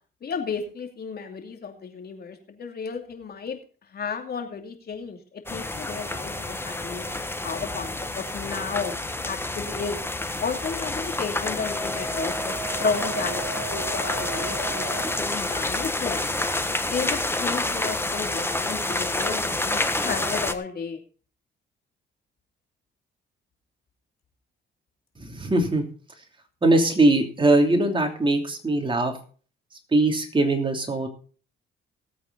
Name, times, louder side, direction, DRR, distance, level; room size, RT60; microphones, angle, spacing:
voice 1, 0.2-3.6 3.9-8.9 9.2-10.0 10.4-16.3 16.9-21.0, left 5 dB, 50° left, 4 dB, 2.7 m, -33 dB
sound 1, 5.5-20.5, left 2 dB, 10° left, 1.3 m, -28 dB
Wind instrument woodwind instrument, 11.6-15.2, right 4 dB, 80° left, 2.7 m, -36 dB
voice 2, 25.3-25.8 26.6-29.1 29.9-31.1, right 2 dB, 25° right, 3 dB, 3.1 m, -21 dB
18.5 x 8.5 x 4.0 m, 0.41 s
cardioid pair, 90°, 20 cm